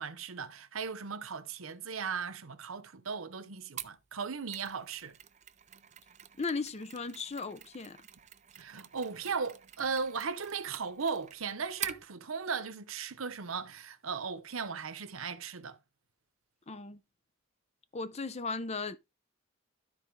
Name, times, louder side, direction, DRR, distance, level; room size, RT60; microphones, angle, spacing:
voice 1, 0.0-5.1 8.6-15.8, right 5 dB, 90° right, 0.9 m, -37 dB
Mechanisms, 3.8-12.1, right 10 dB, 35° right, 0.6 m, -47 dB
voice 2, 6.4-8.0 16.7-17.0 17.9-19.0, left 4 dB, 30° left, 0.6 m, -36 dB
12.5 x 4.3 x 4.6 m
head